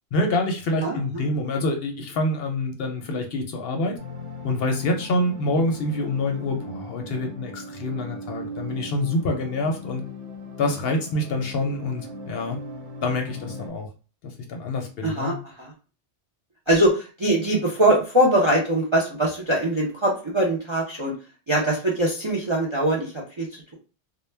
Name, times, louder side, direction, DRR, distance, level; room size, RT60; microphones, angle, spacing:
voice 1, 0.1-4.0 4.4-10.0 10.6-12.6 13.0-13.9 14.2-15.3, left 2 dB, 65° left, 4 dB, 0.7 m, -26 dB
voice 2, 0.8-1.2 15.0-15.7 16.7-21.1 21.5-23.7, right 1 dB, 45° right, -2 dB, 0.4 m, -22 dB
sound 1, 4.0-13.7, equal, 80° right, 1.0 m, -39 dB
2.2 x 2.1 x 3.1 m, 0.35 s
omnidirectional pair, 1.2 m